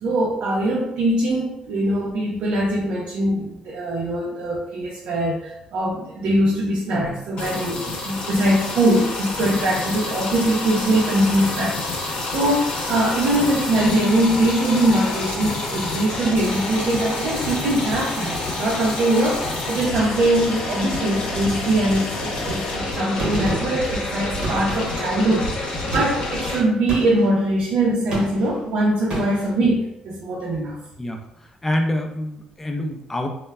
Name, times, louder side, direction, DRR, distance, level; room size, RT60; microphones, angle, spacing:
voice 1, 0.0-11.8 12.3-25.5 25.9-30.8, right 1 dB, 75° right, -4 dB, 0.5 m, -22 dB
sound 1, 7.4-26.6, left 2 dB, 55° left, 0.7 m, -28 dB
Gunshot gunfire, 23.2-23.9 24.4-25.1 25.9-26.3 26.9-27.3 28.1-28.6 29.1-29.5, right 2 dB, 45° right, 0.9 m, -30 dB
voice 2, 31.0-33.3, left 1 dB, 10° left, 3 dB, 0.4 m, -27 dB
3.1 x 2.1 x 2.2 m, 0.80 s
cardioid pair, 120°, 2 cm